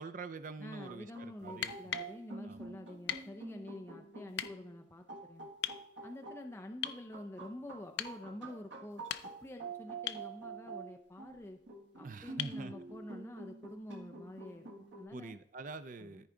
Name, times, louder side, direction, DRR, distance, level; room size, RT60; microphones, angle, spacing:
voice 1, 0.0-1.7 2.4-2.8 12.0-12.7 15.1-16.3, right 4 dB, 45° right, 12 dB, 0.4 m, -45 dB
voice 2, 0.6-5.5 6.0-9.0 9.4-11.6 11.9-15.3 16.0-16.2, left 1 dB, 15° left, 3 dB, 0.5 m, -48 dB
sound 1, 0.7-15.1, right 4 dB, 90° right, 1.5 m, -48 dB
sound 2, 1.5-2.1 3.1-3.3 4.3-4.5 5.6-5.8 6.8-7.0 8.0-8.2 8.9-9.5 10.1-10.3 12.4-12.6 14.5-14.6, left 10 dB, 70° left, 0.5 m, -39 dB
13.5 x 4.7 x 3.8 m, 0.73 s
head